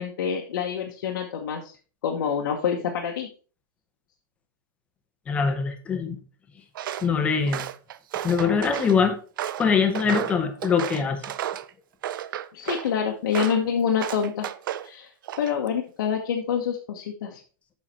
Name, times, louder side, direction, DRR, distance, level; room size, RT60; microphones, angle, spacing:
voice 1, 0.0-1.7 2.0-3.3 12.5-14.5 14.8-15.1 15.4-17.4, left 7 dB, 75° left, 1 dB, 1.2 m, -26 dB
voice 2, 5.3-6.2 7.0-7.6 8.2-9.2 9.6-11.2, left 6 dB, 10° left, 7 dB, 0.7 m, -23 dB
Walk footsteps, 6.7-7.1 7.5-9.0 9.4-11.7 12.0-12.9 13.3-13.6 14.0-14.9 15.2-15.7, right 11 dB, 70° right, 0.5 m, -32 dB
7.5 x 5.7 x 4.3 m, 0.38 s
supercardioid pair, 175°, 11 cm